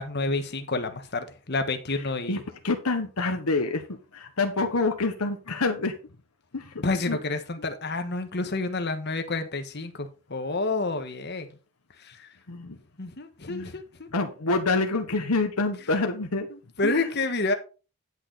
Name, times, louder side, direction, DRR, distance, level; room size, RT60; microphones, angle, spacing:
voice 1, 0.0-2.4 6.8-11.5 12.0-12.3 13.0-14.1 16.8-17.5, left 3 dB, 50° left, 1.4 m, -29 dB
voice 2, 2.3-3.8 4.1-5.9 6.5-7.2 12.5-12.8 13.5-13.7 14.1-16.5 16.8-17.1, left 3 dB, 85° left, 1.3 m, -27 dB
10.5 x 6.5 x 4.1 m
head